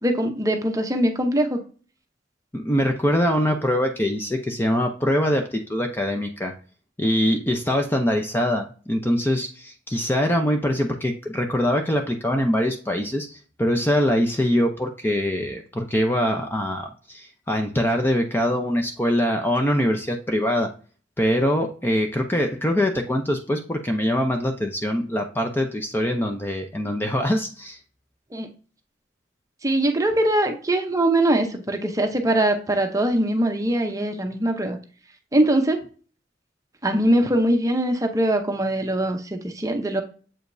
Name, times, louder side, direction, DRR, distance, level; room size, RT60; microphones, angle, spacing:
voice 1, 0.0-1.6 28.3-28.5 29.6-34.8 35.3-35.8 36.8-40.0, right 1 dB, 20° right, 4 dB, 0.8 m, -22 dB
voice 2, 2.5-6.5 7.0-20.7 21.2-27.8, equal, 10° left, 4 dB, 0.6 m, -23 dB
7.5 x 5.0 x 2.6 m, 0.38 s
head